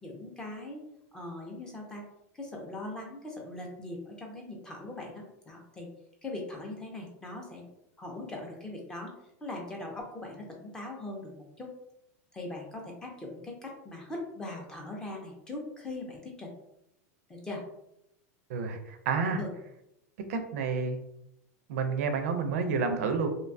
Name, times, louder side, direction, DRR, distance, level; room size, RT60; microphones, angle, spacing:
voice 1, 0.0-0.8 1.1-2.0 2.3-5.9 6.2-7.7 8.0-9.1 9.4-11.7 12.3-16.5 17.3-17.6 19.4-19.5, left 2 dB, 10° left, 0 dB, 0.4 m, -40 dB
voice 2, 18.5-19.4 20.3-21.0 21.7-23.3, right 5 dB, 70° right, 6 dB, 0.4 m, -29 dB
2.6 x 2.2 x 2.5 m, 0.81 s
supercardioid pair, 160°, 8 cm